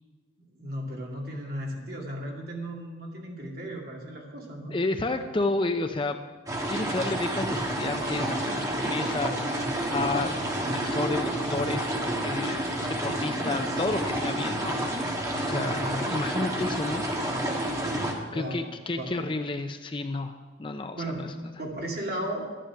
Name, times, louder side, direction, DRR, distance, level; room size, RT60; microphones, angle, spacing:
voice 1, 0.4-4.7 5.1-5.2 15.5-16.0 18.3-18.7 19.0-19.1 20.9-21.3 21.6-22.5, right 1 dB, 50° right, -1 dB, 2.4 m, -35 dB
voice 2, 4.7-6.2 6.7-10.3 10.7-12.6 13.0-14.8 15.4-17.1 18.3-21.3, left 2 dB, 25° left, 7 dB, 0.5 m, -31 dB
sound 1, 6.5-18.1, right 1 dB, 15° right, 1.4 m, -29 dB
11.5 x 10.0 x 5.9 m, 1.3 s
head